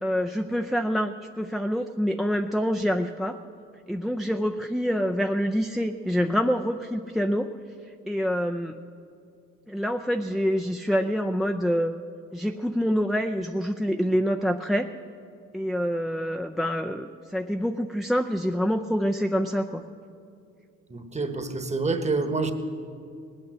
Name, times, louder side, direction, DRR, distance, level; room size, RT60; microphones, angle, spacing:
voice 1, 0.0-3.4 3.9-7.5 8.1-8.8 9.7-12.0 12.3-14.9 15.5-19.8, equal, ahead, 6 dB, 0.4 m, -26 dB
voice 2, 20.9-22.5, right 3 dB, 25° right, 8 dB, 1.2 m, -27 dB
19.0 x 8.8 x 7.7 m, 2.4 s
cardioid pair, 90°, 30 cm